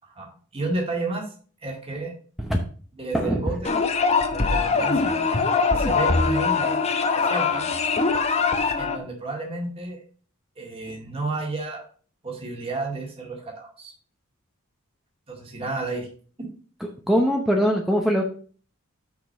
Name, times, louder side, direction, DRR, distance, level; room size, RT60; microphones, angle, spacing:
voice 1, 0.5-1.3 1.6-2.1 3.0-3.8 4.3-5.1 5.7-6.8 7.1-7.7 8.8-10.0 10.6-11.8 12.2-13.9 15.3-16.1, right 2 dB, 25° right, 0 dB, 2.1 m, -31 dB
sound 1, 3.6-9.0, left 4 dB, 30° left, 0.9 m, -22 dB
voice 2, 17.1-18.2, equal, ahead, 1 dB, 0.8 m, -21 dB
6.3 x 5.3 x 6.6 m, 0.42 s
head